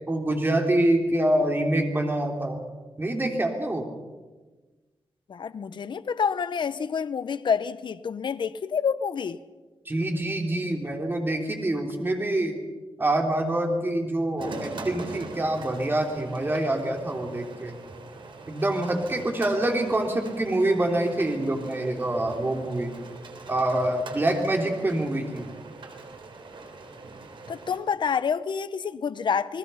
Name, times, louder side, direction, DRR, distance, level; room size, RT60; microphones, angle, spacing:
voice 1, 0.1-2.6 3.0-3.9 9.8-12.6 13.0-17.8 18.5-22.9 23.5-25.5, right 1 dB, 25° right, 3.4 m, -26 dB
voice 2, 5.3-9.4 27.5-29.6, left 6 dB, 55° left, 0.8 m, -28 dB
sound 1, 14.4-27.8, right 3 dB, 65° right, 3.7 m, -42 dB
29.0 x 19.5 x 5.7 m
wide cardioid pair, 130°, 9 cm